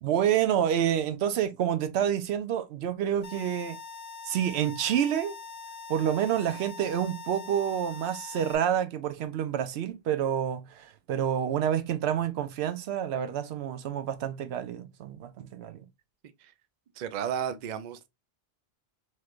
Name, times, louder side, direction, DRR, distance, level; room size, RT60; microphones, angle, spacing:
voice 1, 0.0-3.8 4.2-5.4 5.9-15.8, right 9 dB, 90° right, 0.8 m, -28 dB
sound 1, 3.2-8.6, left 5 dB, 80° left, 1.0 m, -43 dB
voice 2, 17.0-18.1, right 9 dB, 55° right, 0.5 m, -33 dB
3.1 x 3.1 x 2.4 m
omnidirectional pair, 1.1 m